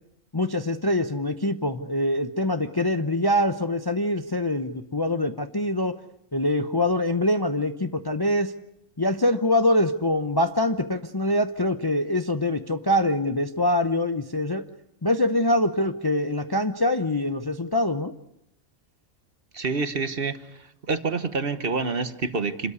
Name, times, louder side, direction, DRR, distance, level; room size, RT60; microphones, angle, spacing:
voice 1, 0.3-5.9 6.3-8.5 9.0-14.7 15.0-18.1, left 1 dB, 20° left, 8 dB, 0.7 m, -24 dB
voice 2, 19.5-20.5 20.9-22.7, right 4 dB, 45° right, 11 dB, 1.2 m, -27 dB
28.0 x 13.0 x 9.7 m, 0.82 s
omnidirectional pair, 1.4 m